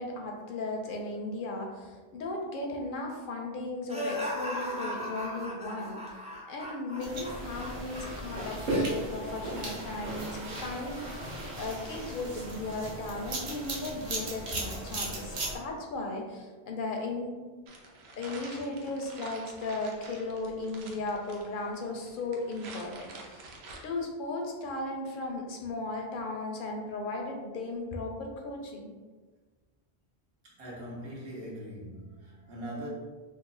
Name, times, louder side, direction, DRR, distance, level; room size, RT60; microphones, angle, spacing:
voice 1, 0.0-6.0 6.5-17.4 18.2-23.5 23.8-28.9, left 2 dB, 60° left, 1 dB, 0.6 m, -36 dB
sound 1, 3.9-9.1 9.5-9.7, equal, 10° right, 0.3 m, -37 dB
sound 2, 7.0-15.5, right 1 dB, 50° right, 0.8 m, -36 dB
sound 3, 17.7-23.8, right 2 dB, 85° right, 0.9 m, -48 dB
voice 2, 30.4-32.9, equal, 70° right, -5 dB, 1.2 m, -41 dB
3.1 x 2.3 x 3.6 m, 1.3 s
omnidirectional pair, 1.1 m